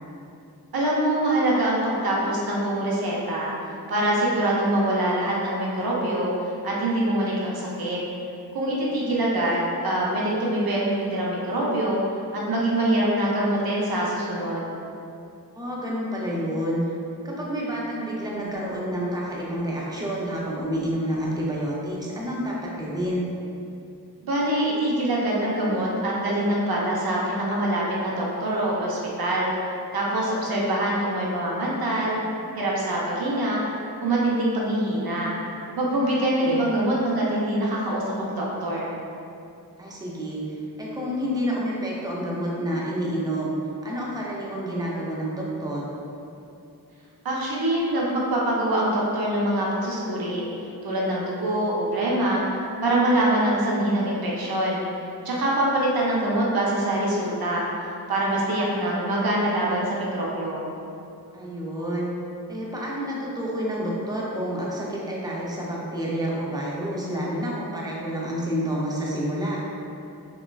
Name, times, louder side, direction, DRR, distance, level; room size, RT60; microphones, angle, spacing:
voice 1, 0.7-3.5 3.9-6.3 6.6-8.0 8.5-12.0 12.3-14.7 24.3-29.5 29.9-32.2 32.6-33.6 34.0-35.3 35.8-38.9 47.2-50.5 50.8-52.4 52.8-54.8 55.2-57.6 58.1-60.7, right 1 dB, 70° right, -4 dB, 0.6 m, -24 dB
voice 2, 15.5-16.8 17.2-23.3 36.0-36.6 39.8-45.9 61.3-62.1 62.5-69.6, equal, 10° right, -5 dB, 0.4 m, -29 dB
3.1 x 2.3 x 2.2 m, 2.6 s
wide cardioid pair, 90°, 38 cm